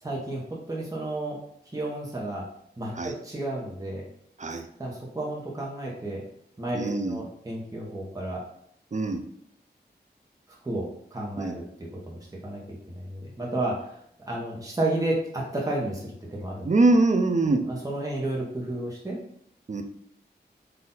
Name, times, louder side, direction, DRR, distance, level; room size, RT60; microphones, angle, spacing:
voice 1, 0.0-1.4 1.7-2.5 2.8-4.0 4.8-6.2 6.6-8.4 10.6-11.6 12.1-13.9 14.2-16.7 17.7-19.2, right 1 dB, 20° right, -3 dB, 1.1 m, -32 dB
voice 2, 6.7-7.2 8.9-9.2 11.4-11.6 16.6-17.6 19.7-19.8, right 2 dB, 45° right, 6 dB, 0.6 m, -23 dB
4.1 x 2.6 x 3.9 m, 0.69 s
wide cardioid pair, 55°, 17 cm